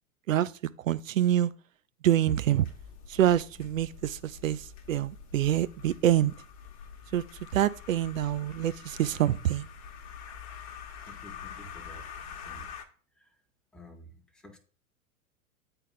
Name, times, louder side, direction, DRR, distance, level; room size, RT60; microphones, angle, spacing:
voice 1, 0.8-1.5 2.0-2.7 3.1-6.3 7.1-9.7, right 11 dB, 65° right, 0.5 m, -26 dB
sound 1, 2.3-12.8, left 7 dB, 50° left, 1.0 m, -46 dB
voice 2, 11.0-12.7 13.2-13.3 13.7-14.6, equal, ahead, 0.5 m, -51 dB
8.7 x 4.0 x 3.9 m
figure-of-eight pair, 95°, 43 cm